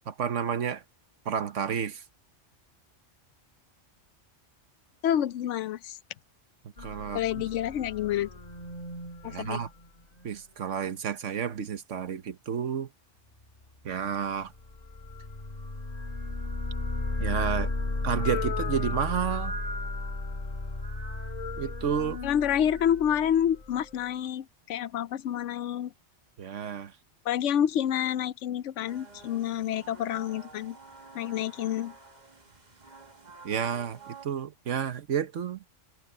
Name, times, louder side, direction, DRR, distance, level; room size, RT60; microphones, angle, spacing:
voice 1, 0.1-0.8 1.2-2.0 6.8-7.4 9.2-9.7 10.2-12.9 13.8-14.5 17.2-17.7 18.0-19.6 21.6-22.2 26.4-26.9 33.4-35.6, right 7 dB, 80° right, 1.4 m, -31 dB
voice 2, 5.0-6.0 7.1-8.3 9.2-9.6 22.2-25.9 27.3-30.8 31.1-31.9, left 10 dB, 75° left, 0.9 m, -28 dB
sound 1, 6.8-10.4 14.6-23.8, left 2 dB, 30° left, 1.9 m, -34 dB
sound 2, 28.9-34.3, right 4 dB, 35° right, 1.6 m, -50 dB
omnidirectional pair, 1.3 m